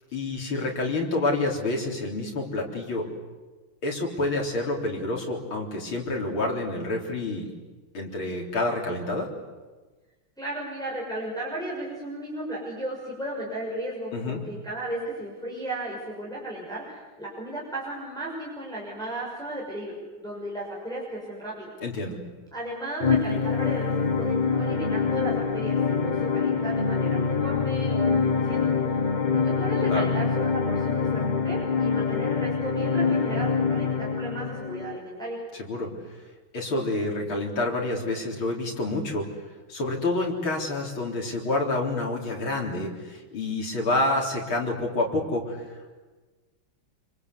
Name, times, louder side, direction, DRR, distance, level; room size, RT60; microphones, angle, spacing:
voice 1, 0.1-3.1 3.8-7.5 7.9-9.3 14.1-14.4 21.8-22.2 29.9-30.1 35.5-35.9 36.5-39.3 39.7-45.6, left 2 dB, 85° left, 0 dB, 4.8 m, -28 dB
voice 2, 10.4-21.7 22.5-28.6 29.3-35.4, right 1 dB, ahead, -5 dB, 6.3 m, -35 dB
sound 1, 23.0-35.0, left 5 dB, 25° left, 1.1 m, -25 dB
26.0 x 25.5 x 8.3 m, 1.3 s
omnidirectional pair, 2.2 m